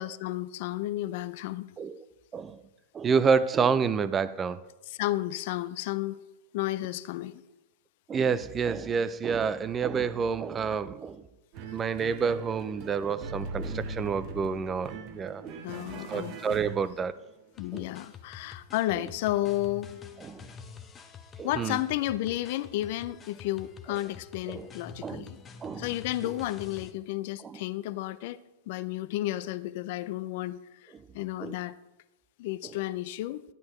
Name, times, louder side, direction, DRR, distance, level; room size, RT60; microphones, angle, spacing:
voice 1, 0.0-1.7 5.0-6.2 6.5-7.4 15.6-16.3 17.6-19.9 21.4-25.4 25.8-28.4 28.7-31.7 32.4-33.4, left 15 dB, 55° left, 0.4 m, -32 dB
voice 2, 2.9-4.6 8.1-11.2 11.7-15.6 16.1-17.2 17.7-17.9 18.9-19.0 20.2-20.4 21.4-21.8 24.5-24.7 25.0-25.3 25.6-25.9 26.2-26.3 27.4-27.6 30.9-31.1 31.4-31.6 32.6-32.7, right 6 dB, 20° right, 0.4 m, -29 dB
sound 1, 11.5-17.3, right 3 dB, 40° right, 1.0 m, -40 dB
sound 2, 17.5-26.9, left 5 dB, 20° left, 0.8 m, -47 dB
10.5 x 9.5 x 3.1 m
hypercardioid pair, 125°, 0 cm